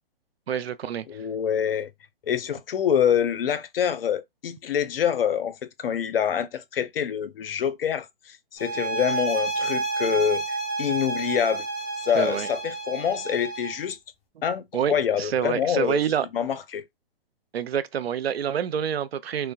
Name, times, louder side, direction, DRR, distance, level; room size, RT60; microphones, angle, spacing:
voice 1, 0.5-1.1 12.1-12.5 14.7-16.3 17.5-19.5, right 8 dB, 90° right, 0.5 m, -27 dB
voice 2, 1.1-1.9 2.3-11.7 12.0-14.0 14.4-16.0 16.3-16.8, left 8 dB, 70° left, 0.6 m, -26 dB
sound 1, 8.6-13.9, right 3 dB, 20° left, 1.0 m, -30 dB
3.2 x 2.1 x 2.3 m
hypercardioid pair, 140°, 30 cm